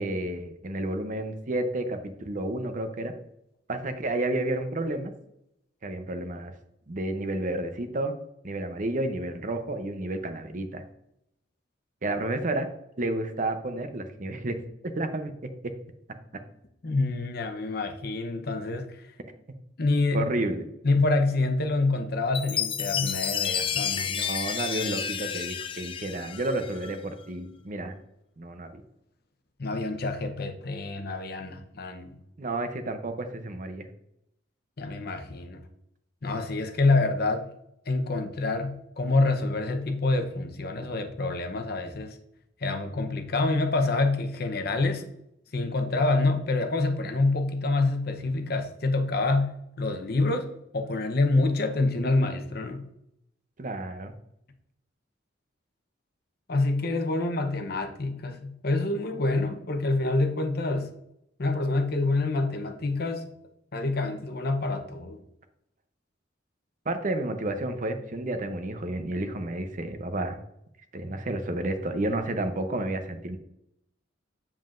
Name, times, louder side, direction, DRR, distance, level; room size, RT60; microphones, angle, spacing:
voice 1, 0.0-3.1 3.7-5.1 5.8-6.5 6.9-8.1 8.4-10.8 12.0-12.7 13.0-15.3 20.1-20.7 24.0-28.0 28.4-28.8 32.4-33.9 53.6-54.1 66.9-70.4 70.9-73.4, right 1 dB, 45° right, 7 dB, 0.7 m, -31 dB
voice 2, 16.8-19.0 19.8-20.2 20.8-24.1 29.6-32.2 34.8-35.6 36.2-37.5 37.9-42.2 42.6-45.0 45.5-50.5 50.7-52.9 56.5-60.9 61.4-63.3 63.7-65.2, left 2 dB, 55° left, 6 dB, 0.8 m, -27 dB
Chime, 22.3-27.0, left 8 dB, 30° left, 0.4 m, -30 dB
7.4 x 7.4 x 2.5 m, 0.80 s
head